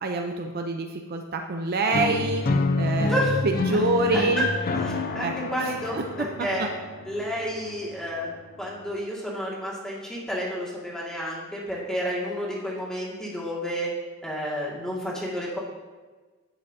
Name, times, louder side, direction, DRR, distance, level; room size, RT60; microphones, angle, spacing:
voice 1, 0.0-2.4 2.8-3.2 3.4-4.5 5.2-5.3 5.6-6.1 6.4-6.5, right 2 dB, 45° right, 4 dB, 0.5 m, -26 dB
sound 1, 1.9-7.9, left 2 dB, 45° left, 0.6 m, -28 dB
voice 2, 3.0-3.4 4.1-4.5 4.8-6.7 7.1-8.3 8.6-13.9 14.2-15.6, equal, 5° left, -5 dB, 2.0 m, -30 dB
9.9 x 8.0 x 2.7 m, 1.3 s
head